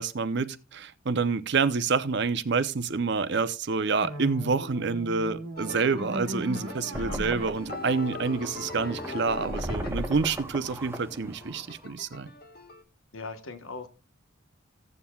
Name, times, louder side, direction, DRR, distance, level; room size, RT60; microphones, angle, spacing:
voice 1, 0.0-12.3, right 4 dB, 55° right, 0.6 m, -28 dB
sound 1, 4.0-9.1, right 1 dB, 75° right, 1.5 m, -39 dB
sound 2, 5.6-12.8, left 3 dB, 45° left, 1.0 m, -42 dB
sound 3, 6.9-11.9, equal, 10° right, 0.6 m, -37 dB
voice 2, 13.1-13.9, left 3 dB, 75° left, 1.3 m, -39 dB
16.0 x 7.3 x 2.3 m
head